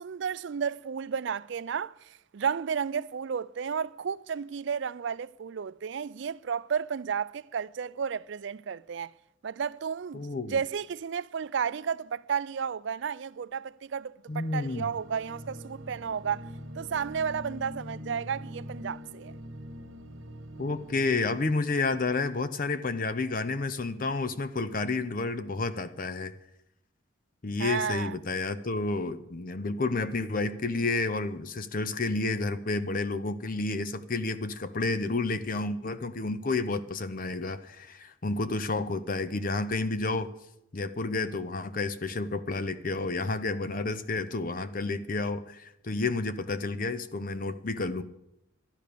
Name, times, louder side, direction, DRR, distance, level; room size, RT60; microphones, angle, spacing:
voice 1, 0.0-9.1 9.4-10.2 10.5-16.4 16.7-19.3 27.6-28.2, right 7 dB, 60° right, 0.4 m, -32 dB
voice 2, 10.1-10.6 14.3-14.9 20.6-26.4 27.4-40.3 40.7-48.0, left 3 dB, 40° left, 0.6 m, -30 dB
sound 1, 14.4-21.4, equal, 80° right, 1.6 m, -43 dB
12.5 x 10.5 x 6.7 m
head